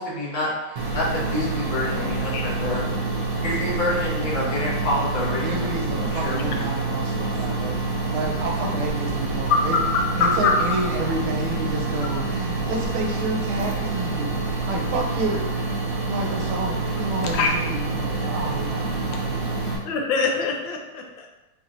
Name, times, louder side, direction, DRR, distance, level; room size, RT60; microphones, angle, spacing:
voice 1, 0.0-2.8 3.4-6.6, left 1 dB, 40° left, -6 dB, 0.7 m, -28 dB
sound 1, 0.8-19.8, right 3 dB, 60° right, 1.2 m, -27 dB
voice 2, 5.4-9.8 10.2-15.5 16.1-19.4, right 2 dB, 80° right, 1 dB, 1.5 m, -30 dB
voice 3, 9.5-10.5 17.0-17.1 17.3-17.6 19.2-19.3 19.8-21.3, left 4 dB, 70° left, 2 dB, 1.2 m, -23 dB
4.8 x 2.8 x 2.6 m, 1.1 s
omnidirectional pair, 2.4 m